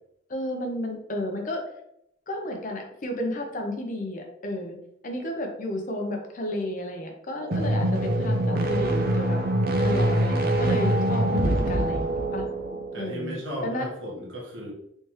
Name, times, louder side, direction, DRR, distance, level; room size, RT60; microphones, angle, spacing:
voice 1, 0.3-1.6 2.3-4.8 5.0-9.4 9.8-12.4 12.9-13.9, left 1 dB, 45° left, 3 dB, 0.7 m, -32 dB
sound 1, 7.4-13.0, right 1 dB, 55° right, 0.6 m, -24 dB
voice 2, 12.9-14.7, equal, 90° right, -2 dB, 1.1 m, -35 dB
3.3 x 3.2 x 2.9 m, 0.76 s
head